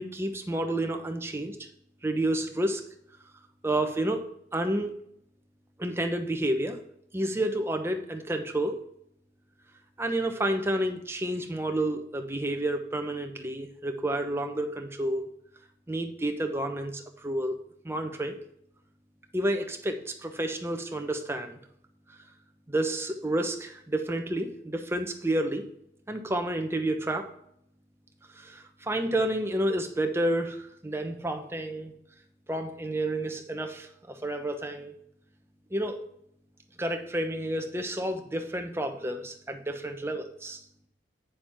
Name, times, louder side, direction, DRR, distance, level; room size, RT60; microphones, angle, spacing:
voice 1, 0.0-1.6 2.0-2.8 3.6-4.2 4.5-4.9 5.8-6.8 7.1-8.7 10.0-15.3 15.9-17.5 17.8-18.4 19.3-21.6 22.7-25.6 26.1-27.3 28.3-31.9 32.5-34.9 35.7-36.0 36.8-40.6, right 1 dB, 15° right, 5 dB, 0.9 m, -30 dB
8.9 x 6.8 x 4.5 m, 0.72 s
head